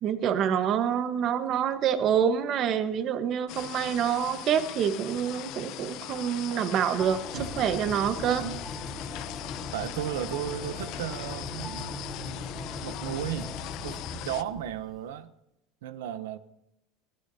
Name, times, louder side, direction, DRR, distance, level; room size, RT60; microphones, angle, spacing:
voice 1, 0.0-8.4, right 8 dB, 45° right, 1.2 m, -27 dB
sound 1, 3.5-14.4, left 15 dB, 55° left, 0.6 m, -40 dB
sound 2, 7.0-14.9, left 3 dB, 30° left, 2.6 m, -40 dB
Piano, 7.0-13.8, equal, 5° right, 3.0 m, -47 dB
voice 2, 8.3-8.6 9.7-13.5 13.8-15.3 15.8-16.4, right 10 dB, 85° right, 0.7 m, -35 dB
21.0 x 15.0 x 2.7 m
supercardioid pair, 125°, 0 cm